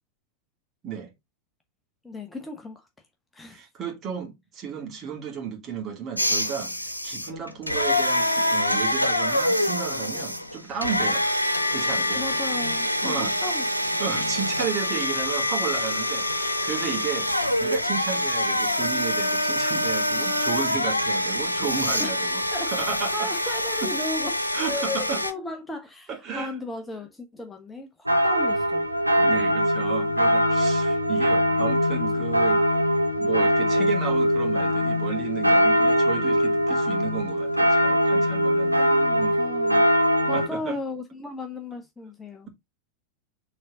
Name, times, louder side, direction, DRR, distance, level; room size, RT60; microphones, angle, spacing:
voice 1, 2.0-2.9 3.3-3.6 12.2-13.6 13.9-14.0 22.0-28.9 38.8-39.9 40.3-42.5, left 2 dB, 10° left, 0.9 m, -35 dB
voice 2, 3.5-6.7 7.0-11.3 11.7-12.2 13.0-13.3 14.0-17.3 17.6-22.4 22.7-23.6 23.8-23.9 24.5-25.2 26.1-26.5 29.2-32.6 33.2-38.8 39.2-39.4 40.3-40.8, right 7 dB, 30° right, 2.4 m, -33 dB
sound 1, 6.2-25.3, left 1 dB, 85° left, 0.9 m, -25 dB
sound 2, 28.1-40.5, equal, 90° right, 0.8 m, -22 dB
6.5 x 3.9 x 3.8 m
figure-of-eight pair, 90°, 0 cm